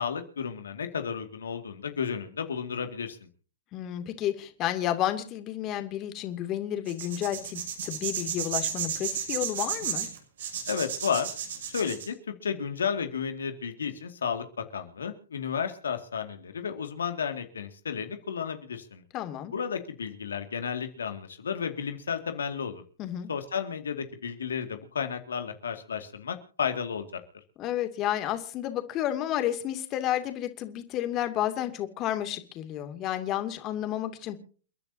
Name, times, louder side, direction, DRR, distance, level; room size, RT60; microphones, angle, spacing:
voice 1, 0.0-3.2 10.7-11.3 11.7-12.2 12.4-14.4 14.7-19.0 19.5-22.8 23.3-27.2, left 7 dB, 85° left, 7 dB, 2.2 m, -32 dB
voice 2, 3.7-10.1 19.1-19.5 23.0-23.3 27.6-34.4, left 12 dB, 35° left, 8 dB, 2.5 m, -31 dB
sound 1, 6.9-12.1, right 8 dB, 70° right, 5.9 m, -33 dB
30.0 x 10.5 x 2.8 m, 0.41 s
hypercardioid pair, 115°, 0 cm